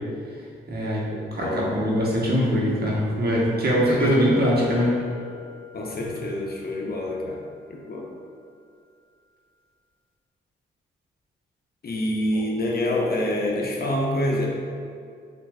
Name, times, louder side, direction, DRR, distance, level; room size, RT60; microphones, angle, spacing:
voice 1, 0.7-5.0, equal, 50° right, -4 dB, 1.0 m, -22 dB
voice 2, 1.4-1.7 3.9-4.5 5.7-7.4 7.7-8.1 11.8-14.5, left 1 dB, 45° left, -1 dB, 0.7 m, -27 dB
sound 1, 4.0-6.9, left 6 dB, 5° left, 1.1 m, -36 dB
5.9 x 2.5 x 2.3 m, 2.2 s
supercardioid pair, 45°, 21 cm